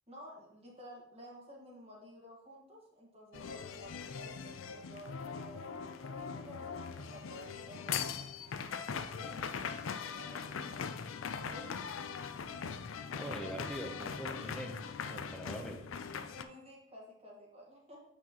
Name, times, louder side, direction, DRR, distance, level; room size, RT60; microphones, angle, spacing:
voice 1, 0.1-8.3 8.8-11.1 11.4-11.9 16.3-18.0, equal, 30° right, -3 dB, 1.7 m, -53 dB
sound 1, 3.3-16.4, left 6 dB, 80° left, 0.5 m, -41 dB
voice 2, 13.1-14.8 15.1-15.8, equal, 5° left, 3 dB, 0.7 m, -43 dB
8.5 x 5.7 x 3.0 m, 0.78 s
head